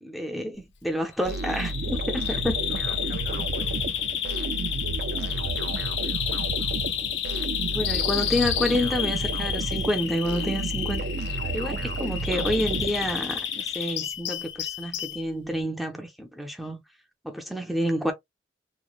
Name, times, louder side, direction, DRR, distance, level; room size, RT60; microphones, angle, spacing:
voice 1, 0.0-2.5 7.7-11.1 11.5-16.8 17.2-18.1, equal, ahead, 0.4 m, -29 dB
Bird vocalization bird call bird song, 1.2-15.2, left 10 dB, 90° left, 0.5 m, -31 dB
sound 1, 1.2-13.5, right 3 dB, 65° right, 0.4 m, -31 dB
voice 2, 2.3-3.8 5.1-6.4 7.8-8.1 11.4-11.7, left 2 dB, 65° left, 0.8 m, -44 dB
3.0 x 2.0 x 2.3 m
head